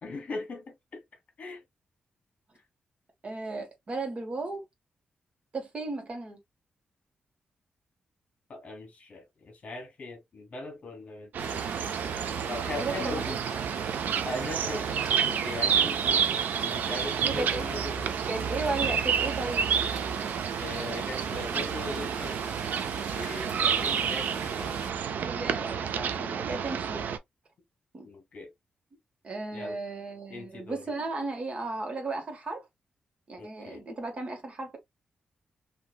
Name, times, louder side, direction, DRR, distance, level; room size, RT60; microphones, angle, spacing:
voice 1, 0.0-1.0 1.4-1.6 8.5-11.8 12.5-13.4 14.2-18.2 20.6-22.6 23.1-24.9 28.0-28.5 29.5-29.8 30.3-30.8 33.4-33.8, left 3 dB, 50° left, 1.5 m, -40 dB
voice 2, 3.2-4.6 5.5-6.4 12.7-13.6 14.6-14.8 17.2-17.7 18.3-19.6 25.1-27.2 27.9-28.1 29.2-32.6 33.3-34.8, right 3 dB, 40° right, 1.5 m, -35 dB
sound 1, 11.3-27.2, right 7 dB, 80° right, 0.5 m, -29 dB
sound 2, 11.4-24.9, equal, 10° right, 2.0 m, -47 dB
3.3 x 2.8 x 2.4 m
cardioid pair, 105°, 3 cm